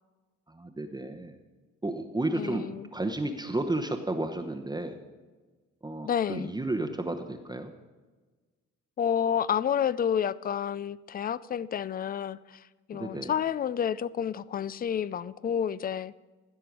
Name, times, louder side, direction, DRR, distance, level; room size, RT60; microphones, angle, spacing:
voice 1, 0.5-1.3 1.8-2.7 2.9-5.0 5.8-7.7 12.9-13.3, right 2 dB, 15° right, 0.9 m, -32 dB
voice 2, 2.3-2.9 6.0-6.5 9.0-12.6 12.9-16.1, left 8 dB, 30° left, 0.4 m, -30 dB
15.5 x 6.7 x 6.0 m
cardioid pair, 90°, 30 cm